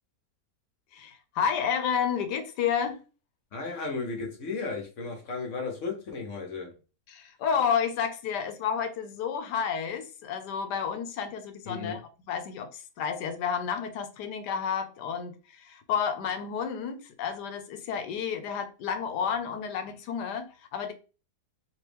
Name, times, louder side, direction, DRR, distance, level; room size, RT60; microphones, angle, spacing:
voice 1, 0.9-3.0 7.1-12.0 12.3-20.9, left 7 dB, 90° left, 1.2 m, -31 dB
voice 2, 3.5-6.7 11.6-12.0, left 4 dB, 55° left, 1.1 m, -34 dB
3.0 x 2.9 x 3.2 m
omnidirectional pair, 1.7 m